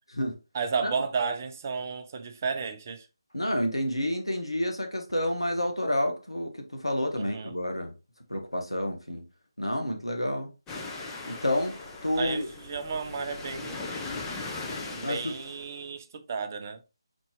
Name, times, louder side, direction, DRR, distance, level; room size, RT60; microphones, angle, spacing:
voice 1, 0.5-3.1 7.2-7.5 12.2-13.8 14.9-16.8, right 5 dB, 30° right, 0.6 m, -33 dB
voice 2, 3.3-7.9 8.3-9.3 9.6-10.5 11.3-12.5 15.0-15.3, left 1 dB, 90° left, 1.3 m, -29 dB
sound 1, 10.7-15.9, left 3 dB, 10° left, 0.6 m, -39 dB
4.3 x 4.2 x 3.0 m
figure-of-eight pair, 155°, 3 cm